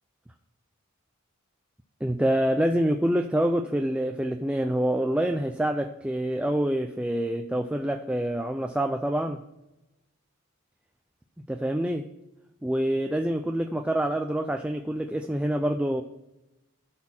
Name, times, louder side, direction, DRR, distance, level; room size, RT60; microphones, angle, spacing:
voice 1, 2.0-9.4 11.5-12.1 12.6-16.0, right 1 dB, 5° right, 5 dB, 0.3 m, -26 dB
12.5 x 4.2 x 4.3 m, 0.95 s
head